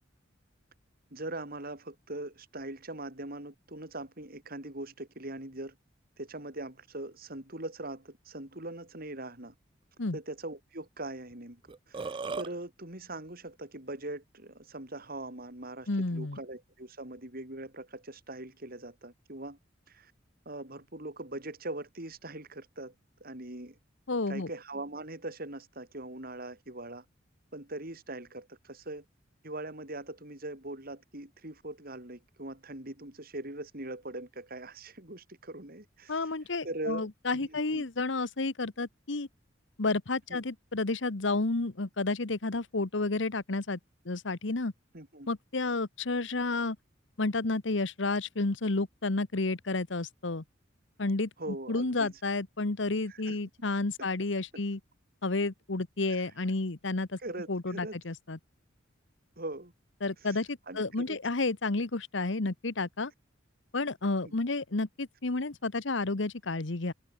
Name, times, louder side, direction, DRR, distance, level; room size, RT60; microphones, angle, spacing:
voice 1, 1.1-5.8 6.2-9.5 10.1-11.6 11.9-19.6 19.9-20.1 20.5-22.9 23.2-23.8 24.3-27.0 27.5-29.0 29.4-36.2 36.6-37.9 40.3-40.4 44.9-45.3 51.4-52.1 53.1-53.4 56.1-56.2 57.2-58.0 59.4-59.7 60.2-60.4 60.7-61.2 64.2-64.3, right 2 dB, 50° right, 5.7 m, -41 dB
Burping eructation, 11.3-11.4 11.7-12.5, right 4 dB, 25° right, 0.4 m, -36 dB
voice 2, 15.9-16.4 24.1-24.5 36.1-39.3 39.8-43.8 44.0-44.7 45.3-46.8 47.2-50.4 51.0-54.8 55.2-57.2 57.5-58.4 60.0-63.1 63.7-66.9, left 3 dB, 70° left, 1.2 m, -31 dB
head